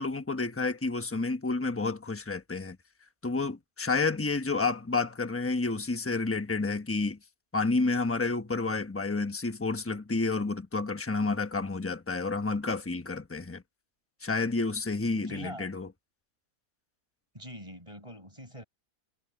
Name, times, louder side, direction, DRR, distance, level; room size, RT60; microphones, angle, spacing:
voice 1, 0.0-2.8 3.2-7.2 7.5-13.6 14.2-15.9, left 3 dB, 10° left, 0.9 m, -30 dB
voice 2, 15.1-15.7 17.3-18.6, equal, 20° right, 6.1 m, -44 dB
omnidirectional pair, 1.6 m